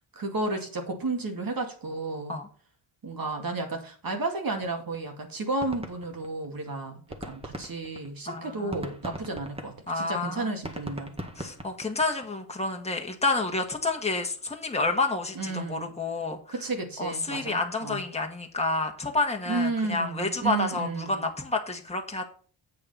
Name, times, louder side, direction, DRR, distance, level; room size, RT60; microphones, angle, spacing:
voice 1, 0.2-2.4 3.0-11.1 15.4-15.9 16.5-18.0 19.5-21.3, right 3 dB, 45° right, 3 dB, 2.4 m, -32 dB
sound 1, 4.6-4.7 4.9-5.1 5.4-6.7 7.0-12.2, right 1 dB, 10° right, 1.8 m, -39 dB
voice 2, 8.3-8.8 9.9-10.5 11.4-16.4 17.0-22.3, left 3 dB, 15° left, 2 dB, 1.8 m, -29 dB
8.4 x 6.6 x 5.5 m, 0.43 s
cardioid pair, 85°, 47 cm